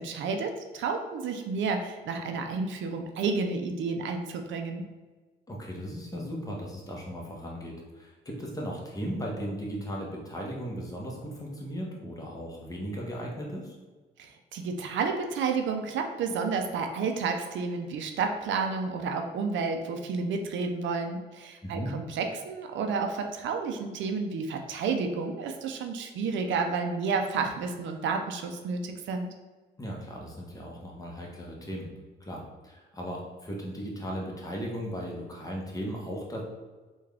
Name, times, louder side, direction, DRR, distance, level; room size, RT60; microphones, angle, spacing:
voice 1, 0.0-4.9 14.2-29.3, right 4 dB, 70° right, 5 dB, 0.5 m, -31 dB
voice 2, 5.5-13.8 21.6-21.9 29.8-31.9 32.2-36.4, equal, 15° left, -2 dB, 0.9 m, -37 dB
3.4 x 2.3 x 3.3 m, 1.3 s
cardioid pair, 90°, 20 cm